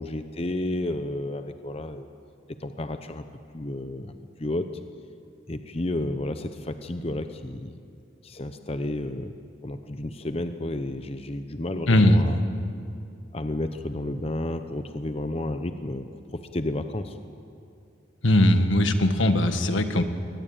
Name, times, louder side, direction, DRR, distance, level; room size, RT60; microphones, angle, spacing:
voice 1, 0.0-2.1 2.6-3.2 3.5-4.7 5.5-7.7 8.2-9.3 9.6-12.4 13.3-16.0 16.3-17.1, left 1 dB, 30° left, 8 dB, 0.8 m, -31 dB
voice 2, 11.9-12.2 18.2-20.0, left 1 dB, 80° left, 8 dB, 1.6 m, -19 dB
22.5 x 19.0 x 8.9 m, 2.5 s
head